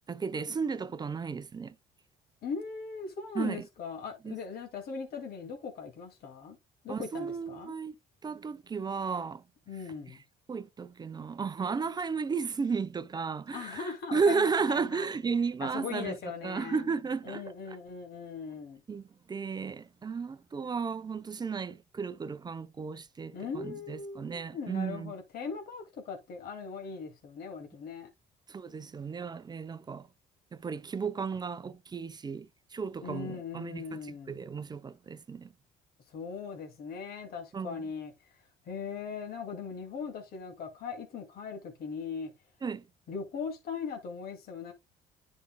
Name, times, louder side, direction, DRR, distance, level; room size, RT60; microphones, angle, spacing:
voice 1, 0.1-1.8 3.3-3.6 4.2-4.4 6.9-8.0 8.2-9.4 10.5-16.2 16.4-17.8 18.9-25.1 28.5-30.1 30.5-35.5 37.5-37.8 42.6-42.9, right 5 dB, 25° right, 0.6 m, -34 dB
voice 2, 2.4-6.6 6.8-7.7 9.7-10.2 13.5-15.1 15.6-16.9 17.2-18.8 23.3-28.1 33.0-34.3 36.1-42.3 43.1-44.7, left 5 dB, 65° left, 2.4 m, -39 dB
10.5 x 5.3 x 2.2 m
cardioid pair, 110°, 17 cm